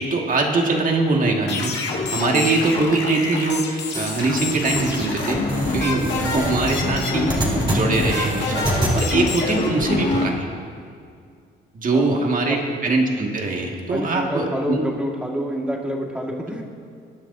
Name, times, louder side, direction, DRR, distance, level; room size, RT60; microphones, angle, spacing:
voice 1, 0.0-1.7 2.1-5.4 5.7-8.7 8.9-10.5 11.7-12.6 12.8-14.9, right 3 dB, 45° right, 1 dB, 1.9 m, -22 dB
sound 1, 1.5-10.3, left 3 dB, 60° left, 2.1 m, -26 dB
sound 2, 3.9-9.0, right 1 dB, 25° right, 3.6 m, -27 dB
voice 2, 13.9-16.6, equal, 5° right, 0 dB, 1.8 m, -28 dB
21.5 x 10.5 x 2.7 m, 2.3 s
cardioid pair, 90°, 20 cm